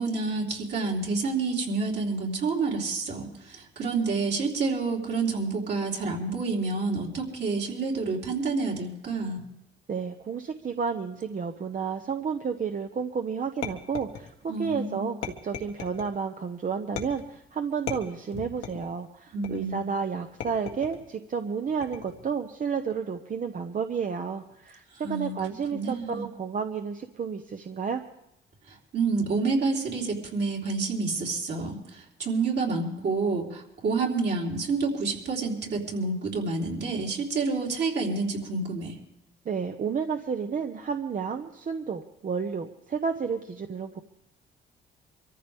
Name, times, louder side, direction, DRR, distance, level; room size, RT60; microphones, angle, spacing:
voice 1, 0.0-9.4 14.5-15.2 19.3-19.9 25.0-25.4 25.7-26.3 28.9-39.0, right 4 dB, 60° right, -2 dB, 3.7 m, -28 dB
voice 2, 9.9-28.0 39.4-44.0, right 6 dB, 40° right, 6 dB, 0.9 m, -31 dB
sound 1, 13.6-14.6 15.2-16.1 17.0-17.4 17.9-18.9 19.4-19.8 20.4-21.1 21.8-22.3, left 7 dB, 85° left, 1.6 m, -37 dB
24.0 x 14.0 x 3.5 m, 0.87 s
cardioid pair, 90°, 20 cm